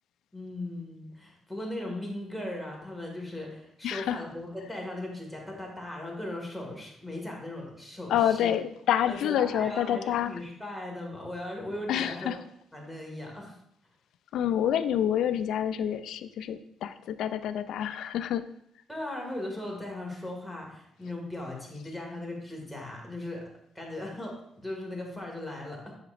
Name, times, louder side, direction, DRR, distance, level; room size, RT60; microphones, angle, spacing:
voice 1, 0.3-8.5 9.1-12.3 12.7-13.5 18.9-26.0, left 1 dB, ahead, -2 dB, 2.0 m, -38 dB
voice 2, 3.8-4.2 8.1-10.3 11.9-12.4 14.3-18.4, left 10 dB, 80° left, 12 dB, 0.4 m, -28 dB
8.0 x 5.9 x 2.6 m, 0.74 s
cardioid pair, 90°, 0 cm